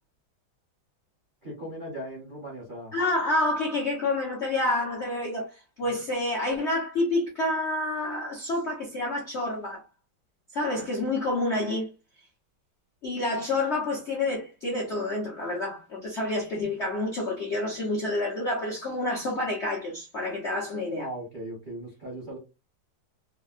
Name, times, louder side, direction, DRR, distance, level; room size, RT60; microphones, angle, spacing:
voice 1, 1.4-2.9 5.8-5.9 21.0-22.4, right 1 dB, 45° right, 0.7 m, -38 dB
voice 2, 2.9-9.8 10.5-11.9 13.0-21.1, left 2 dB, 60° left, 0.7 m, -28 dB
3.4 x 2.1 x 2.4 m
omnidirectional pair, 2.3 m